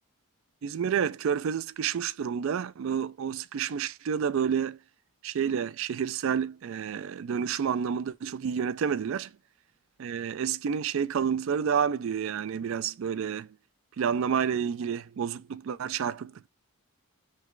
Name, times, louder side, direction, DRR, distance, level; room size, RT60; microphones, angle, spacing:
voice 1, 0.6-4.8 5.2-9.3 10.0-13.5 14.0-16.5, right 7 dB, 60° right, 0.3 m, -29 dB
3.2 x 3.2 x 3.6 m
head